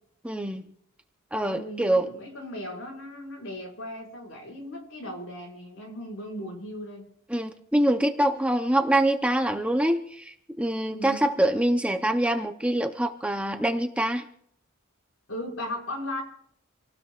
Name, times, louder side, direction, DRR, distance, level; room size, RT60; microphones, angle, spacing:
voice 1, 0.2-0.6 1.3-2.1 7.3-14.2, right 1 dB, 5° right, 5 dB, 0.8 m, -25 dB
voice 2, 1.4-7.0 10.9-11.2 15.3-16.2, left 1 dB, 70° left, -1 dB, 5.9 m, -37 dB
28.5 x 18.0 x 2.5 m, 0.67 s
head